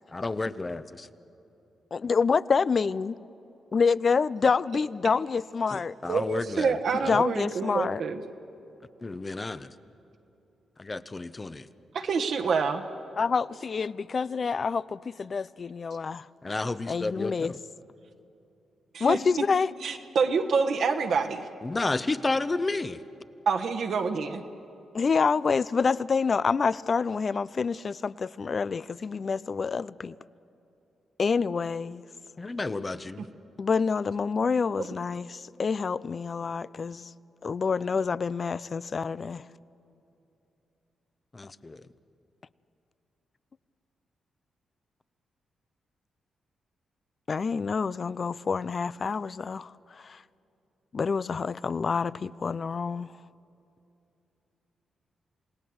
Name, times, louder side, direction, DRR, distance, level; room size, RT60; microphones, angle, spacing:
voice 1, 0.1-1.1 5.7-7.2 9.0-9.7 10.8-11.7 16.4-17.6 21.6-23.0 32.4-33.3 41.3-41.9, left 3 dB, 30° left, 0.9 m, -31 dB
voice 2, 1.9-3.2 3.7-5.9 7.1-8.0 13.2-16.3 16.9-17.5 19.0-19.7 24.9-30.2 31.2-32.0 33.6-37.1 37.4-39.4 47.3-50.2 50.9-53.1, left 5 dB, 50° left, 0.5 m, -27 dB
voice 3, 6.1-8.2 11.9-12.8 18.9-19.5 19.8-21.4 23.4-24.4 34.8-34.9, right 5 dB, 70° right, 1.4 m, -27 dB
28.0 x 18.0 x 7.9 m
cardioid pair, 60°, 0 cm